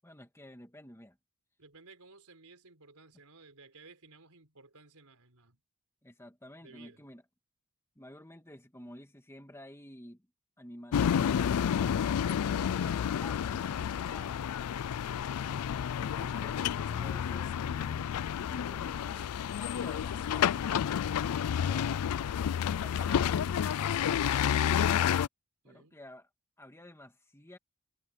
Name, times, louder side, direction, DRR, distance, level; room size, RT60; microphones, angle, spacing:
voice 1, 0.0-1.2 6.0-7.2 8.0-10.3 10.6-14.4 16.0-20.7 21.6-22.0 25.6-26.3 26.6-27.6, left 1 dB, 10° left, 2.1 m, -51 dB
voice 2, 1.6-5.6 6.6-7.0 15.0-15.3 25.6-26.0, right 3 dB, 85° right, 4.0 m, -56 dB
sound 1, 10.9-25.3, left 8 dB, 85° left, 0.4 m, -30 dB
head